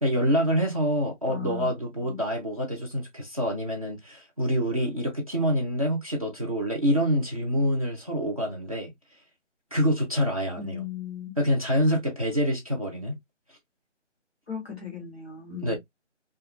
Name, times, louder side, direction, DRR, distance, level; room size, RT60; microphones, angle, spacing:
voice 1, 0.0-8.9 9.7-10.8 11.4-13.2 15.6-15.8, equal, 30° right, 0.7 m, -26 dB
voice 2, 1.3-1.7 2.0-2.2 10.5-11.3 14.5-15.8, left 7 dB, 5° right, 0.9 m, -37 dB
2.5 x 2.3 x 2.2 m
figure-of-eight pair, 165°, 37 cm